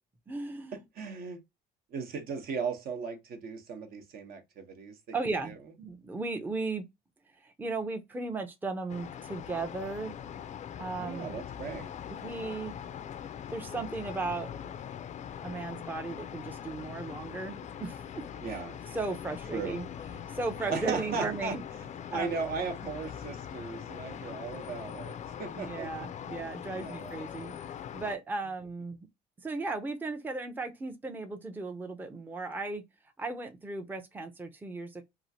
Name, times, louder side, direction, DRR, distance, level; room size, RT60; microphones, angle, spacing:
voice 1, 0.3-0.8 5.1-6.8 7.4-10.1 10.8-11.4 12.1-12.8 13.5-14.5 15.4-18.2 18.5-18.6 18.9-21.6 22.1-22.3 25.5-29.1 29.4-32.8 33.2-35.0, right 3 dB, 10° right, 0.5 m, -36 dB
voice 2, 1.0-1.4 1.9-5.1 5.4-5.5 11.0-11.9 18.4-18.8 19.5-19.8 20.7-21.5 22.1-25.9 26.7-27.1, right 5 dB, 65° right, 0.9 m, -37 dB
sound 1, 8.9-28.2, left 9 dB, 45° left, 0.4 m, -42 dB
2.9 x 2.4 x 2.7 m
cardioid pair, 110°, 17 cm